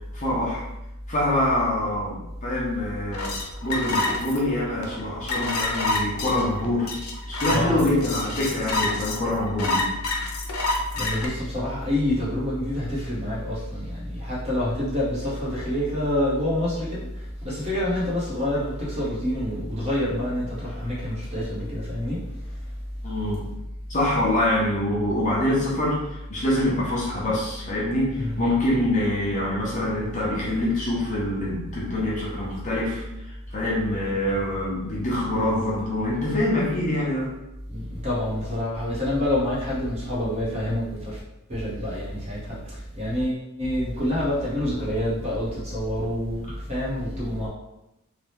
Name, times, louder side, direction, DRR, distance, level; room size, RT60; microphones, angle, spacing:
voice 1, 0.1-0.6 1.1-3.3 3.6-7.0 7.3-9.9 23.0-23.5 23.9-37.3, left 1 dB, 35° left, -5 dB, 0.7 m, -25 dB
sound 1, 3.1-11.3, left 2 dB, 85° left, 0.6 m, -28 dB
voice 2, 7.5-8.1 10.9-22.2 28.2-28.4 37.7-41.2 41.5-47.5, left 1 dB, 30° right, -7 dB, 1.0 m, -27 dB
2.8 x 2.2 x 3.4 m, 0.91 s
head